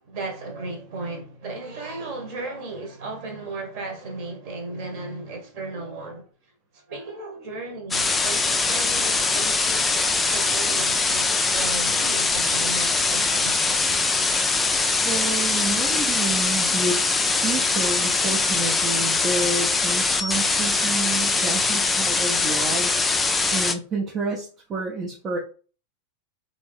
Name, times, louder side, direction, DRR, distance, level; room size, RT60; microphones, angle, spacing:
voice 1, 0.1-6.3 6.7-13.8, right 2 dB, 45° right, 1.3 m, -35 dB
sound 1, 7.9-23.7, left 3 dB, 10° left, 0.4 m, -22 dB
voice 2, 15.0-17.0 17.3-23.0 23.5-25.4, right 3 dB, 30° right, 0.7 m, -29 dB
3.5 x 2.7 x 3.4 m
figure-of-eight pair, 90°, 0 cm